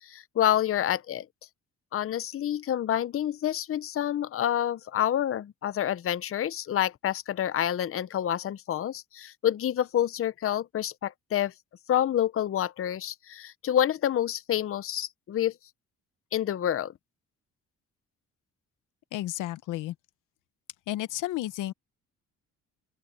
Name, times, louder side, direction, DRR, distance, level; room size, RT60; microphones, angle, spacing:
voice 1, 0.0-1.3 1.9-11.5 11.9-15.5 16.3-16.9, left 11 dB, 45° left, 0.7 m, -28 dB
voice 2, 19.1-19.9 20.9-21.7, left 15 dB, 90° left, 1.0 m, -32 dB
open air
cardioid pair, 90°, 30 cm